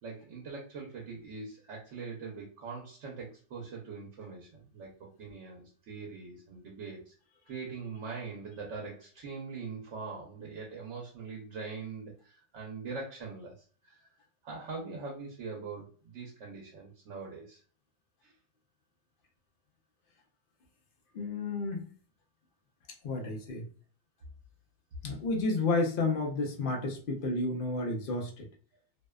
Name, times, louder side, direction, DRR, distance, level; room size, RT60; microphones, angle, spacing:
voice 1, 0.0-4.9 5.2-7.1 7.5-13.6 13.8-14.1 14.4-17.6 18.2-18.3, right 4 dB, 80° right, -1 dB, 1.0 m, -42 dB
voice 2, 21.1-21.8 23.0-23.7 25.0-28.5, left 3 dB, 55° left, 2 dB, 0.7 m, -31 dB
2.6 x 2.1 x 2.2 m, 0.41 s
omnidirectional pair, 1.2 m